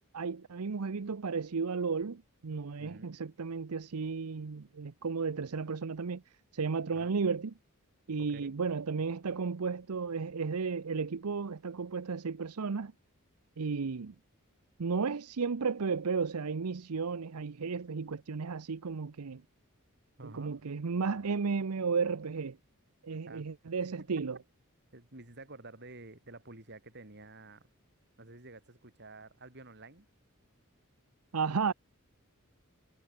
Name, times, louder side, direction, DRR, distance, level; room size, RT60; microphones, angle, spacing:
voice 1, 0.1-6.2 6.5-7.5 8.1-12.9 13.6-14.1 14.8-19.4 20.2-22.6 23.0-24.4 31.3-31.7, right 5 dB, 85° right, 0.7 m, -33 dB
voice 2, 2.8-3.2 6.9-7.1 8.2-8.5 20.2-20.6 23.2-23.5 23.8-24.1 24.9-27.7 28.2-30.1, right 2 dB, 50° right, 3.7 m, -50 dB
head